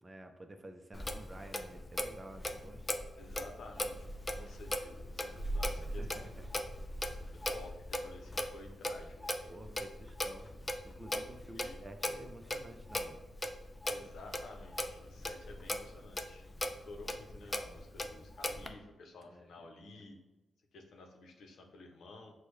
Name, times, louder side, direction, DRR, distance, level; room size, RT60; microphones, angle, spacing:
voice 1, 0.0-2.9 5.7-6.5 9.5-10.5 10.8-13.2 19.2-19.7 20.0-20.1, right 1 dB, 30° right, 6 dB, 0.6 m, -51 dB
Clock, 0.9-18.7, left 1 dB, 30° left, 0.5 m, -39 dB
voice 2, 3.2-4.0 4.3-6.3 7.3-9.5 11.5-11.8 13.9-16.5 16.9-20.2 20.7-22.3, left 2 dB, 75° left, 2 dB, 0.7 m, -52 dB
6.0 x 2.3 x 3.2 m, 1.1 s
supercardioid pair, 50°, 0 cm